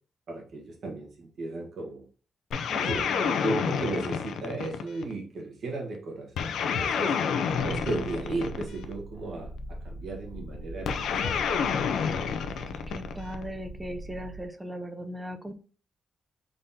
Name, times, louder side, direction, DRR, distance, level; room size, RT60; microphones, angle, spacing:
voice 1, 0.3-2.0 2.9-7.2 7.6-11.4, right 2 dB, 60° right, 0 dB, 1.1 m, -35 dB
sound 1, 2.5-5.1 6.4-8.9 10.9-13.4, left 6 dB, 85° left, 0.4 m, -29 dB
voice 2, 2.7-3.3 12.9-15.5, equal, 5° right, 8 dB, 0.4 m, -38 dB
Purr, 7.5-14.5, right 1 dB, 50° left, 0.7 m, -42 dB
3.8 x 3.6 x 2.6 m, 0.38 s
wide cardioid pair, 175°, 0 cm